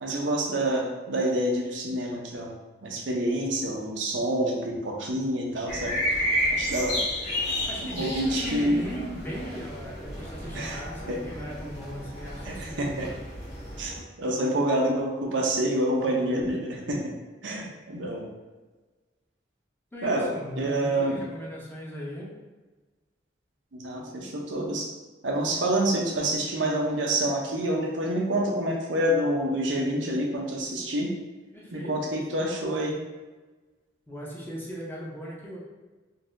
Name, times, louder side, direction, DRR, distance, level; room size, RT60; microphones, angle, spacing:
voice 1, 0.0-2.5 2.8-6.0 6.5-7.0 8.0-8.8 10.5-10.8 11.1-11.2 12.5-13.1 13.8-17.1 17.4-18.3 20.0-20.3 20.6-21.2 23.7-24.9 25.2-31.1 31.7-33.0, right 1 dB, 90° right, -1 dB, 0.7 m, -27 dB
sound 1, 5.7-14.0, left 1 dB, 60° left, 1.3 m, -32 dB
voice 2, 7.7-13.1 16.1-16.4 19.9-22.3 31.5-31.9 32.3-32.5 34.1-35.6, equal, 10° left, -5 dB, 0.7 m, -38 dB
3.9 x 2.7 x 2.6 m, 1.3 s
head